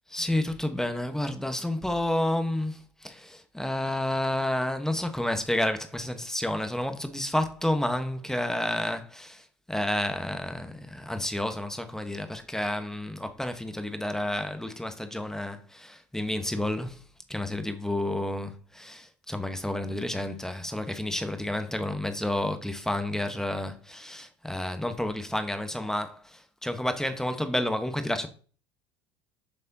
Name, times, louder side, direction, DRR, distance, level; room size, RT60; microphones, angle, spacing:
voice 1, 0.1-17.0 17.3-28.3, left 1 dB, 5° left, 1.1 m, -30 dB
7.7 x 5.4 x 2.8 m
hypercardioid pair, 80°, 14 cm